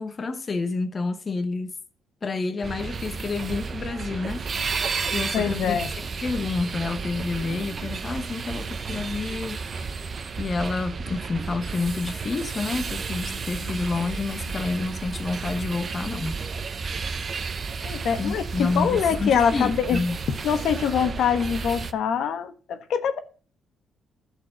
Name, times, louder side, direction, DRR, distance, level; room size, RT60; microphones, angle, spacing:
voice 1, 0.0-1.7 2.2-4.8 5.1-5.8 6.2-10.0 10.4-16.4 16.8-16.9 18.2-20.2, left 3 dB, 35° left, 1.1 m, -29 dB
sound 1, 2.6-21.9, right 5 dB, 40° right, 0.9 m, -32 dB
voice 2, 5.3-5.9 17.8-20.0 20.4-23.2, left 7 dB, 75° left, 1.2 m, -24 dB
13.0 x 4.6 x 7.9 m
cardioid pair, 90°, 0 cm